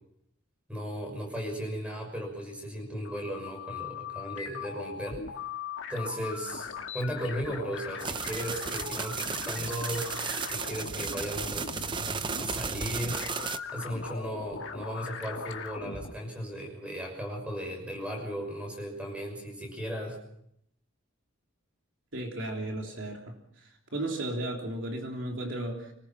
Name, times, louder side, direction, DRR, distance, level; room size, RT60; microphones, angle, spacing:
voice 1, 0.7-5.2 5.9-10.1 10.5-11.9 12.3-13.2 13.7-20.2, equal, 5° right, 2 dB, 6.2 m, -36 dB
sound 1, 2.9-16.1, left 5 dB, 60° left, 1.8 m, -40 dB
sound 2, 8.0-13.6, right 5 dB, 20° right, 0.7 m, -34 dB
voice 2, 22.1-25.9, right 1 dB, 65° right, 1 dB, 3.3 m, -35 dB
25.0 x 20.0 x 6.0 m, 0.73 s
head